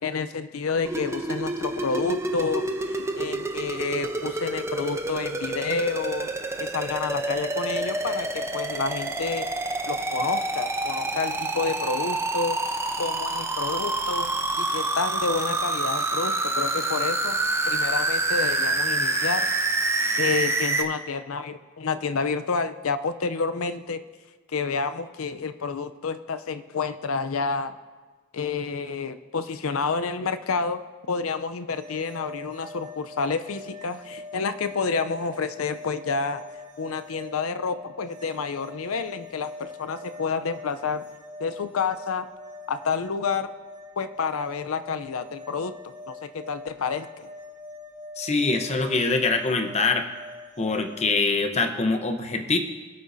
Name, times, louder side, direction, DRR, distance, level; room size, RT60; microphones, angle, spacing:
voice 1, 0.0-6.3 6.6-9.5 9.9-12.6 13.0-14.3 14.6-17.4 17.7-19.5 20.2-24.0 24.5-27.8 28.3-30.8 31.1-36.4 36.8-41.0 41.4-42.3 42.7-43.5 44.0-45.7 46.1-47.3, left 4 dB, 70° left, 11 dB, 0.6 m, -29 dB
sound 1, 0.9-20.8, right 2 dB, 15° right, 0.7 m, -27 dB
sound 2, 31.7-51.2, left 2 dB, 35° right, 2.1 m, -43 dB
voice 2, 48.2-50.1 50.6-52.6, left 3 dB, 30° left, 6 dB, 0.9 m, -24 dB
24.5 x 8.5 x 2.7 m, 1.4 s
head